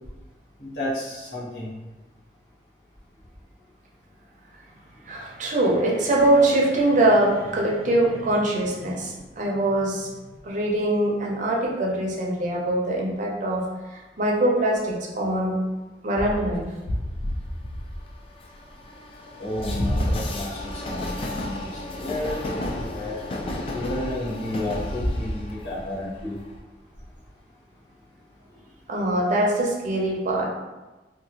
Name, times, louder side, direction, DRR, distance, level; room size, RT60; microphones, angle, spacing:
voice 1, 0.6-1.7 19.4-23.2 23.7-26.4, left 1 dB, 80° left, -9 dB, 1.1 m, -32 dB
voice 2, 5.1-10.1 10.4-13.6 13.9-15.6 16.0-16.6 28.9-30.5, right 1 dB, 45° right, -2 dB, 0.6 m, -23 dB
Train, 16.2-26.6, left 1 dB, 30° left, 0.3 m, -31 dB
2.8 x 2.3 x 2.7 m, 1.1 s
head